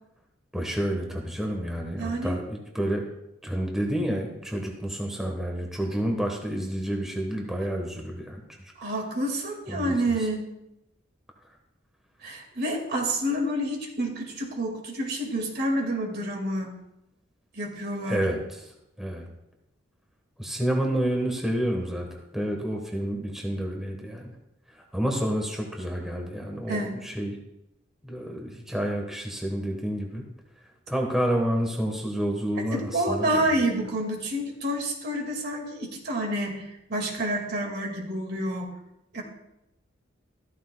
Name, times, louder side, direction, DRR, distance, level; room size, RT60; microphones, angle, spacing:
voice 1, 0.5-3.1 3.4-8.4 9.7-10.3 18.1-18.7 19.0-19.3 20.4-24.3 24.7-27.4 28.0-30.2 30.9-33.7, right 1 dB, ahead, 1 dB, 1.2 m, -29 dB
voice 2, 2.0-2.3 8.8-10.5 12.2-16.7 17.5-18.3 26.7-27.0 32.7-38.7 39.1-39.2, right 1 dB, 55° right, 2 dB, 2.1 m, -28 dB
14.0 x 13.5 x 2.3 m, 0.87 s
head